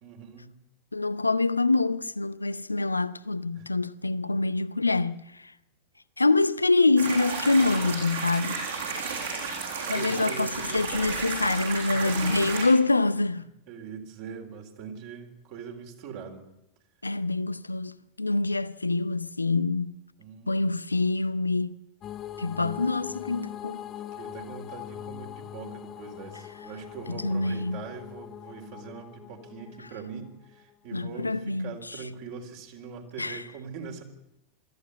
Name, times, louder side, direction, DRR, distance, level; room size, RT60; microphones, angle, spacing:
voice 1, 0.0-0.5 3.6-3.7 9.9-10.9 11.9-12.5 13.7-16.4 20.2-20.6 24.2-34.0, right 6 dB, 50° right, 3.8 m, -42 dB
voice 2, 0.9-5.5 6.2-9.1 9.9-13.5 17.0-20.0 20.5-21.8 22.4-23.8 27.1-27.8 30.9-32.0 33.2-33.4, left 3 dB, 80° left, 0.7 m, -26 dB
sound 1, 7.0-12.6, right 4 dB, 65° right, 7.7 m, -33 dB
sound 2, 22.0-30.7, left 10 dB, 30° left, 1.0 m, -41 dB
23.0 x 14.5 x 8.4 m
figure-of-eight pair, 90°, 0 cm